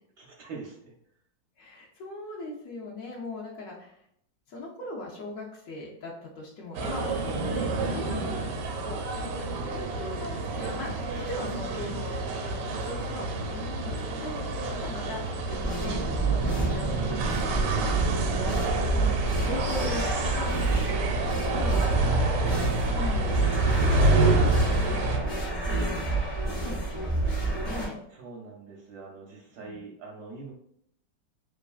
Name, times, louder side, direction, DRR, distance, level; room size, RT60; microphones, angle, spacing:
voice 1, 0.2-0.9 12.6-12.8 14.6-14.9 21.6-22.4 23.7-24.1 28.1-30.5, right 4 dB, 75° right, -2 dB, 0.9 m, -43 dB
voice 2, 1.6-4.0 4.5-8.4 8.8-15.2 15.5-21.7 22.1-22.4 22.8-23.4 23.9-25.1 25.7-26.3 26.6-28.0 29.6-29.8, left 2 dB, 75° left, -4 dB, 0.8 m, -40 dB
sound 1, 6.7-25.2, right 2 dB, 90° right, 1.3 m, -28 dB
sound 2, 10.5-12.2 12.7-12.8 13.3-15.8 16.2-17.0 17.3-17.4 17.8-17.9 18.1-18.2 18.8-18.9 19.2-20.0 23.8-25.6, equal, 55° right, 0.6 m, -46 dB
sound 3, 15.5-27.9, right 3 dB, 55° left, 0.4 m, -29 dB
3.1 x 2.4 x 2.3 m, 0.70 s
omnidirectional pair, 2.0 m